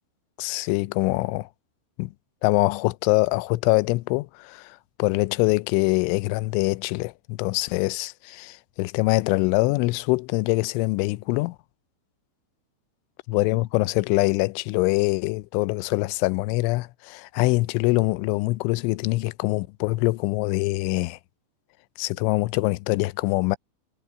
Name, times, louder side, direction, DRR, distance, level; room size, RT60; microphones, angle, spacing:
voice 1, 0.4-1.5 2.0-2.1 2.4-11.6 13.3-21.2 22.0-23.6, left 23 dB, 85° left, 3.0 m, -24 dB
omnidirectional pair, 5.5 m